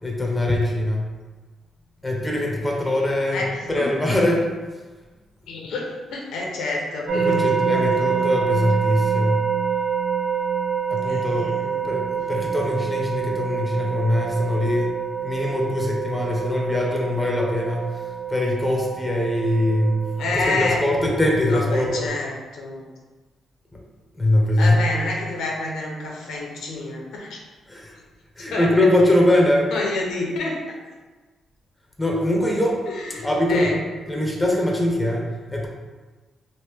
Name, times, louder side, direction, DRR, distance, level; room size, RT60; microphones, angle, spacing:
voice 1, 0.0-1.1 2.0-3.4 3.7-4.5 7.1-9.5 10.9-11.5 11.8-14.9 15.2-18.0 18.3-20.1 20.3-22.1 24.2-24.9 27.7-27.9 28.4-29.7 32.0-32.8 33.2-33.8 34.1-35.3 35.5-35.7, left 1 dB, 10° left, -1 dB, 0.6 m, -22 dB
voice 2, 3.3-3.9 5.5-8.2 11.0-11.9 20.2-20.8 21.5-22.9 24.6-27.4 28.5-28.7 29.7-30.6 32.9-33.7, left 3 dB, 90° left, -1 dB, 0.7 m, -28 dB
sound 1, 7.1-22.1, right 7 dB, 80° right, 0.7 m, -27 dB
3.1 x 2.5 x 3.5 m, 1.3 s
cardioid pair, 105°, 0 cm